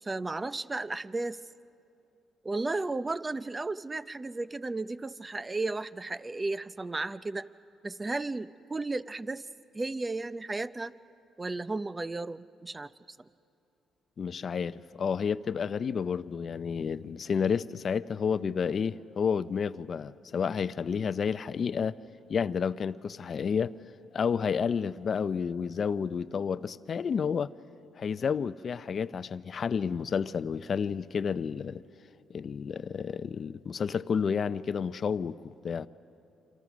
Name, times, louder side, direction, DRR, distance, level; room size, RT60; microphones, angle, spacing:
voice 1, 0.0-1.4 2.4-7.5 7.8-9.5 9.7-10.9 11.4-13.3, right 3 dB, 20° right, 0.6 m, -34 dB
voice 2, 14.2-22.0 22.3-23.7 24.1-27.5 28.0-31.8 32.3-35.4 35.6-35.9, left 6 dB, 50° left, 0.6 m, -30 dB
27.5 x 26.0 x 6.2 m
cardioid pair, 90°, 0 cm